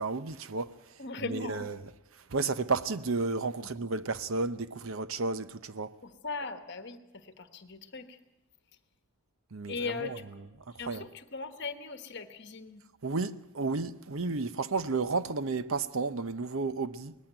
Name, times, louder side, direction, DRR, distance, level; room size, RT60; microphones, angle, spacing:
voice 1, 0.0-1.8 2.1-6.0 9.5-10.5 10.8-11.0 13.0-17.2, right 3 dB, 65° right, 0.7 m, -32 dB
voice 2, 1.0-1.7 3.6-3.7 6.0-8.2 9.7-10.2 10.8-12.8, left 4 dB, 50° left, 1.3 m, -39 dB
19.5 x 15.0 x 9.1 m
head